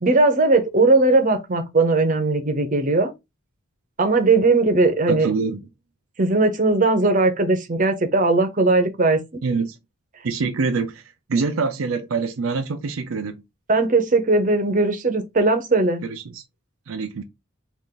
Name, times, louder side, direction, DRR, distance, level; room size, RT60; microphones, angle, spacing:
voice 1, 0.0-3.1 4.0-5.3 6.2-9.2 13.7-16.0, right 3 dB, 40° right, 0.7 m, -18 dB
voice 2, 5.1-5.6 9.4-9.8 10.2-11.0 11.3-13.4 16.0-16.4 16.9-17.2, right 4 dB, 80° right, 0.5 m, -25 dB
3.6 x 2.5 x 3.7 m
head